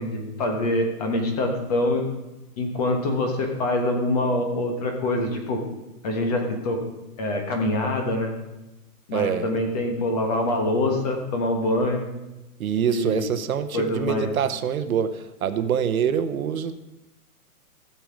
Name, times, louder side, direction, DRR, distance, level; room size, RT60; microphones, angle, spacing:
voice 1, 0.0-2.0 2.6-5.6 6.0-6.8 7.2-8.3 9.1-12.0 12.9-13.3 13.7-14.3, left 1 dB, 25° left, 3 dB, 1.2 m, -25 dB
voice 2, 9.1-9.6 12.6-16.8, right 8 dB, 65° right, 10 dB, 0.9 m, -25 dB
15.0 x 6.6 x 5.0 m, 1.0 s
hypercardioid pair, 175°, 46 cm